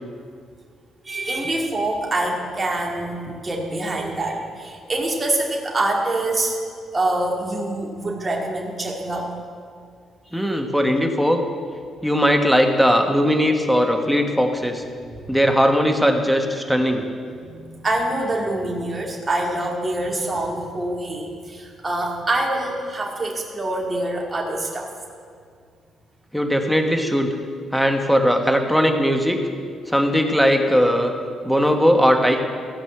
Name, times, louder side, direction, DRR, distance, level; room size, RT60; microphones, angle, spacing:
voice 1, 1.0-6.6 6.9-9.3 10.2-10.6 15.1-15.3 17.4-24.9, right 2 dB, 25° right, -2 dB, 2.2 m, -25 dB
voice 2, 10.3-11.4 12.0-14.8 15.3-17.0 26.3-27.3 27.7-29.4 29.9-31.1 31.4-32.4, equal, ahead, 4 dB, 1.3 m, -19 dB
15.5 x 5.3 x 7.8 m, 2.1 s
cardioid pair, 90°, 0 cm